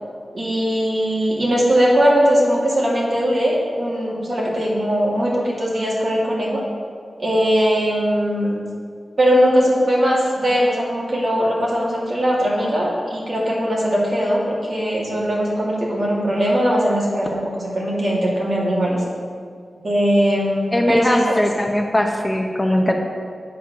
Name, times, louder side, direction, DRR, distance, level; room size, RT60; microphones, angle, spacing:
voice 1, 0.3-6.6 7.2-8.6 9.2-19.0 19.8-21.4, equal, 60° right, -5 dB, 2.3 m, -20 dB
voice 2, 20.7-22.9, left 1 dB, 20° left, 2 dB, 0.9 m, -20 dB
8.2 x 4.4 x 6.4 m, 2.1 s
cardioid pair, 50°, 0 cm